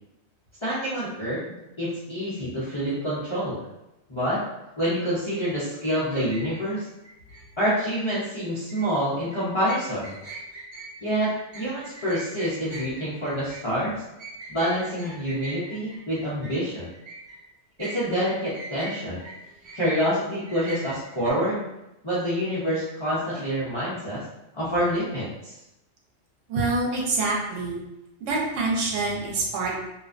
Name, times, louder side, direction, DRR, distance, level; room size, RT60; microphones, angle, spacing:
voice 1, 0.6-1.4 1.8-3.6 4.1-4.4 4.8-6.9 7.6-10.1 11.0-13.9 14.5-16.9 17.8-19.2 19.7-21.6 22.0-24.2 24.5-25.6, equal, 35° left, -11 dB, 0.5 m, -27 dB
sound 1, 6.1-7.4 8.5-8.9 9.3-17.4 17.8-20.0 20.4-21.3, right 2 dB, 50° right, 0.7 m, -42 dB
voice 2, 26.5-27.8 28.2-29.8, right 3 dB, 85° right, -2 dB, 1.0 m, -26 dB
2.4 x 2.1 x 2.4 m, 0.92 s
omnidirectional pair, 1.3 m